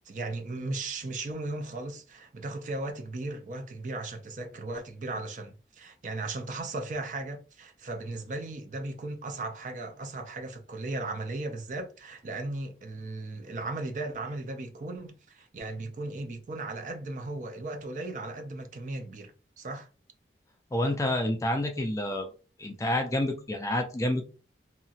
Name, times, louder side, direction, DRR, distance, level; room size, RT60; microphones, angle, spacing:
voice 1, 0.1-19.3 19.6-19.9, right 2 dB, 45° right, 0.5 m, -36 dB
voice 2, 20.7-22.3 22.6-24.2, left 1 dB, 15° left, 0.3 m, -28 dB
2.8 x 2.4 x 2.7 m
head